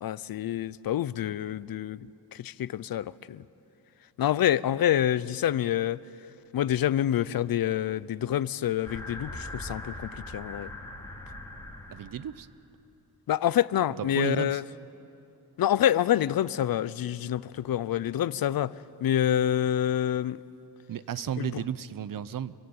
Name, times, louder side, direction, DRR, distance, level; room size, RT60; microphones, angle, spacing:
voice 1, 0.0-3.4 4.2-6.0 6.5-10.7 13.3-14.6 15.6-18.8 19.0-20.4 21.4-21.5, left 11 dB, 65° left, 18 dB, 0.6 m, -27 dB
sound 1, 8.8-12.4, left 1 dB, 10° left, 3.5 m, -41 dB
voice 2, 11.9-12.5 14.1-14.6 20.9-22.5, right 9 dB, 60° right, 16 dB, 0.8 m, -33 dB
28.0 x 22.5 x 8.8 m, 2.7 s
wide cardioid pair, 140°, 38 cm